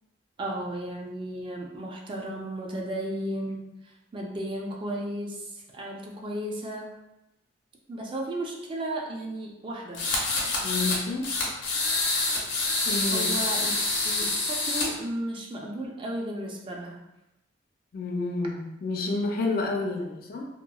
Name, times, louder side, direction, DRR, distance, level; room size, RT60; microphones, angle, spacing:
voice 1, 0.4-6.9 7.9-10.0 13.1-13.7 14.0-17.0, right 1 dB, 25° right, -1 dB, 0.3 m, -34 dB
sound 1, 9.9-11.0 11.2-14.9, left 2 dB, 85° left, 0.7 m, -27 dB
voice 2, 10.6-11.3 12.8-13.3 17.9-20.5, left 3 dB, 50° left, 1 dB, 0.4 m, -29 dB
2.8 x 2.3 x 2.2 m, 0.92 s
head